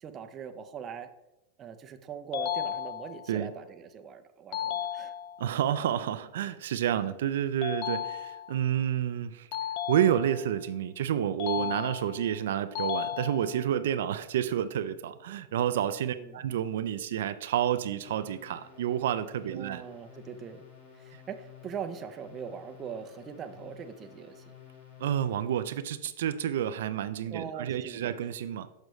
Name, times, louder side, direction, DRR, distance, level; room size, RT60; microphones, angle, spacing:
voice 1, 0.0-1.1 1.6-5.1 11.5-11.9 16.1-16.4 19.5-20.6 20.9-24.4 27.3-28.1, right 7 dB, 25° right, 0.5 m, -41 dB
sound 1, 2.3-3.3 4.5-5.5 7.6-8.6 9.5-10.6 11.4-12.3 12.7-13.7, left 10 dB, 45° left, 0.3 m, -34 dB
voice 2, 5.4-9.5 9.9-19.8 25.0-28.7, right 10 dB, 75° right, 0.3 m, -29 dB
sound 2, 18.1-25.6, left 8 dB, 75° left, 2.3 m, -52 dB
6.4 x 6.3 x 3.1 m
supercardioid pair, 150°, 0 cm